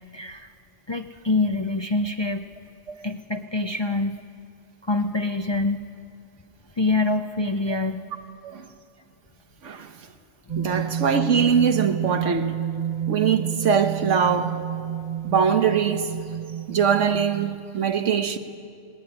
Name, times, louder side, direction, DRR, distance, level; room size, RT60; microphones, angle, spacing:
voice 1, 0.1-0.5 0.9-2.5 3.0-4.2 4.8-5.9 6.8-8.0, left 2 dB, 30° left, 0.5 m, -25 dB
sound 1, 10.5-17.6, right 10 dB, 50° right, 0.5 m, -30 dB
voice 2, 10.6-12.5 13.1-14.6 15.2-16.1 16.7-18.4, right 7 dB, 75° right, 1.4 m, -22 dB
18.5 x 18.0 x 9.9 m
omnidirectional pair, 1.3 m